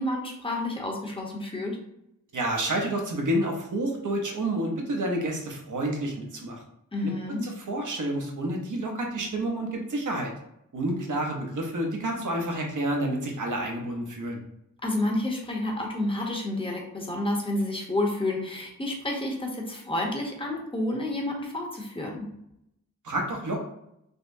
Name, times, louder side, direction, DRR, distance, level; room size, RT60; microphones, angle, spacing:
voice 1, 0.0-1.8 6.9-7.5 14.8-22.2, left 1 dB, 15° left, 0 dB, 0.8 m, -30 dB
voice 2, 2.3-6.6 7.0-7.1 7.4-10.3 10.7-14.4 23.0-23.6, right 1 dB, 70° right, 1 dB, 0.8 m, -29 dB
5.1 x 2.0 x 2.6 m, 0.79 s
wide cardioid pair, 110°, 32 cm